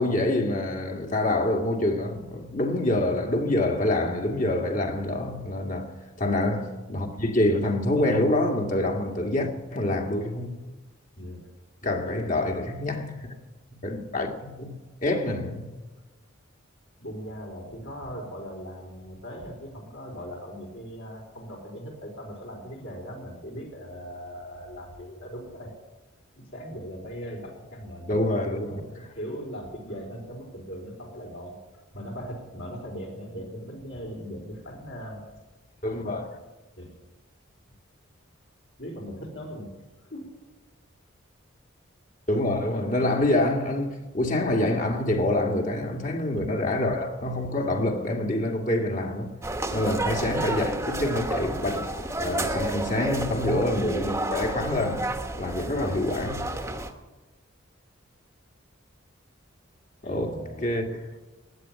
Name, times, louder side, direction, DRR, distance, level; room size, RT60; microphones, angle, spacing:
voice 1, 0.0-5.9 6.2-10.5 11.8-13.3 13.8-14.7 15.0-15.7 28.1-28.6 35.8-36.3 42.3-49.3 49.7-55.1 55.3-56.5 60.0-60.4 60.6-61.0, left 1 dB, 40° left, 2.1 m, -26 dB
voice 2, 11.2-11.5 12.0-12.4 17.0-25.7 26.3-31.6 31.9-35.2 36.8-36.9 38.8-39.7 40.1-40.4 44.7-44.9 49.8-50.0 52.4-52.5 60.0-60.8, equal, 65° left, 4.4 m, -39 dB
sound 1, 49.4-56.9, right 2 dB, 15° right, 1.2 m, -31 dB
16.0 x 10.5 x 8.6 m
head